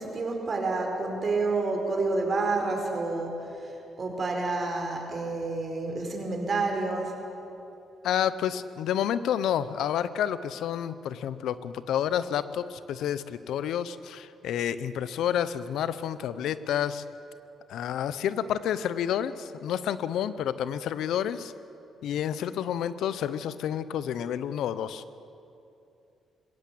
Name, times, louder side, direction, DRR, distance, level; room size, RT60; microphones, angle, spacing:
voice 1, 0.0-7.2, right 3 dB, 40° right, 2 dB, 4.7 m, -29 dB
voice 2, 8.0-17.0 17.7-21.5 22.0-25.0, left 9 dB, 80° left, 14 dB, 0.7 m, -29 dB
21.0 x 17.5 x 8.5 m, 2.7 s
cardioid pair, 90°, 0 cm